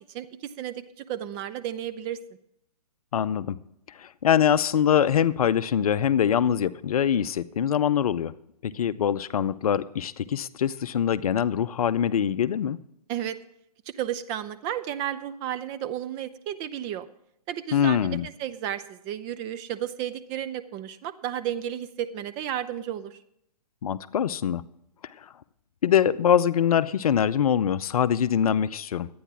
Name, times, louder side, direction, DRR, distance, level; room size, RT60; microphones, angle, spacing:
voice 1, 0.0-2.2 13.1-13.4 13.9-17.1 17.5-23.2, right 11 dB, 20° right, 0.4 m, -33 dB
voice 2, 3.1-3.6 4.0-8.3 8.6-12.8 17.7-18.3 23.8-24.6 25.8-29.1, left 9 dB, 60° left, 0.6 m, -23 dB
12.0 x 9.3 x 6.0 m
hypercardioid pair, 130°, 21 cm